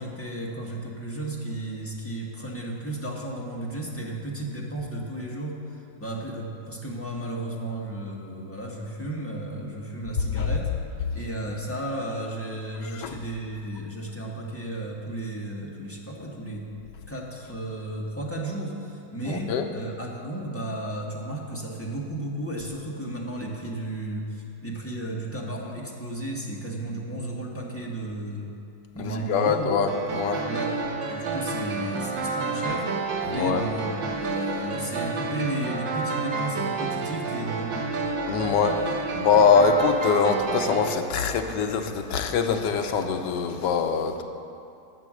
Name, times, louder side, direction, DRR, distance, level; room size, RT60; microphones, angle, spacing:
voice 1, 0.0-5.6 6.0-10.7 11.1-16.6 17.1-28.5 28.9-29.8 30.4-32.9 33.3-37.9, right 1 dB, 10° left, -3 dB, 1.1 m, -33 dB
voice 2, 19.2-19.7 29.0-30.4 33.3-33.6 38.3-38.8 39.1-44.2, left 5 dB, 75° left, 5 dB, 1.4 m, -23 dB
sound 1, 29.9-41.0, right 4 dB, 75° right, 1.6 m, -30 dB
12.0 x 7.8 x 6.3 m, 2.6 s
omnidirectional pair, 2.0 m